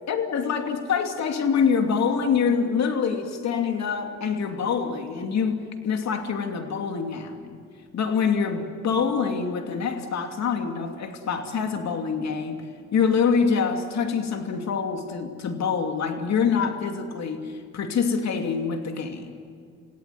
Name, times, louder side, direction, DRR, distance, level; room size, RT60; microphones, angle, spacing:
voice 1, 0.1-7.6 7.9-12.7 12.9-19.4, left 6 dB, 60° left, 5 dB, 2.8 m, -25 dB
28.5 x 17.0 x 9.6 m, 2.1 s
cardioid pair, 90°, 30 cm